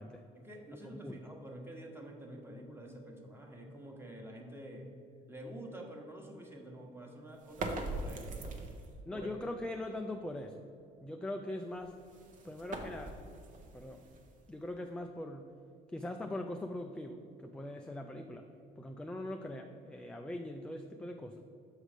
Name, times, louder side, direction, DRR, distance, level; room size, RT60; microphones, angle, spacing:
voice 1, 0.3-4.9 5.3-8.7 9.1-9.3, right 1 dB, 15° right, 0 dB, 1.2 m, -48 dB
sound 1, 7.4-9.0 11.7-14.7, right 2 dB, 50° right, 0.9 m, -42 dB
voice 2, 9.0-10.6 11.0-11.9 12.4-13.1 13.7-14.0 14.5-15.5 15.9-18.5 18.8-21.4, left 1 dB, 5° left, 4 dB, 0.3 m, -41 dB
6.4 x 4.9 x 5.0 m, 2.5 s
cardioid pair, 110°, 17 cm